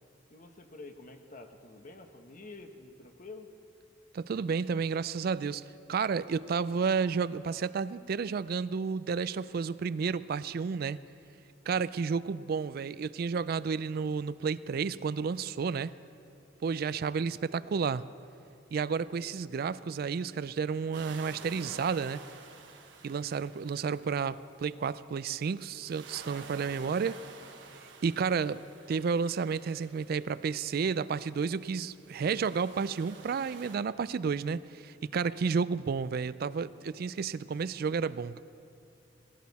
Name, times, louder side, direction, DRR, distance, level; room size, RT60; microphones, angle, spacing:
voice 1, 0.3-3.5, left 3 dB, 45° left, 5 dB, 1.1 m, -48 dB
voice 2, 4.1-11.0 11.7-15.9 16.6-18.0 18.7-22.2 23.0-27.2 27.7-28.6 28.9-38.4, right 5 dB, 55° right, 17 dB, 0.3 m, -31 dB
sound 1, 19.0-20.2 21.3-22.4 23.5-24.6 25.7-26.8 27.9-29.1 30.2-31.3, right 2 dB, ahead, 0.9 m, -60 dB
sound 2, 20.9-24.7 25.7-30.7 31.6-33.7, right 4 dB, 80° right, 1.3 m, -50 dB
18.0 x 15.5 x 4.2 m, 2.8 s
head